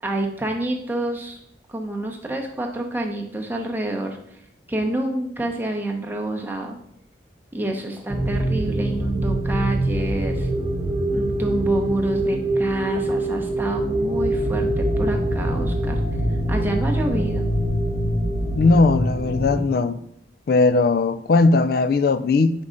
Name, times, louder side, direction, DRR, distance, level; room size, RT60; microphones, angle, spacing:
voice 1, 0.0-1.4 1.7-4.4 4.7-6.8 7.5-10.5 11.1-16.0 16.5-17.5, right 1 dB, 10° right, 0.7 m, -28 dB
sound 1, 8.1-19.6, right 1 dB, 30° right, 1.0 m, -24 dB
voice 2, 18.5-20.0 20.5-22.6, left 3 dB, 55° left, 0.3 m, -18 dB
5.4 x 3.6 x 5.1 m
head